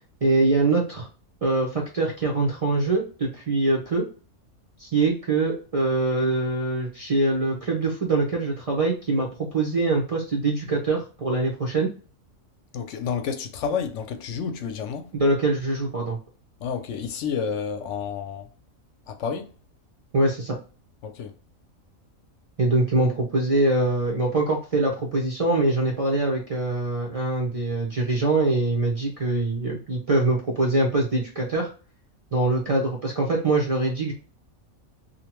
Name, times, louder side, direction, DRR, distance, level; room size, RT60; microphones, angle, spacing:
voice 1, 0.2-1.1 1.4-4.0 4.8-9.3 9.5-11.9 15.1-16.2 20.1-20.6 22.6-31.7 32.3-34.1, right 2 dB, 55° right, 0.4 m, -23 dB
voice 2, 12.7-15.1 16.6-18.5 19.1-19.5 21.0-21.3, left 6 dB, 70° left, 0.8 m, -30 dB
2.6 x 2.1 x 2.9 m
omnidirectional pair, 1.4 m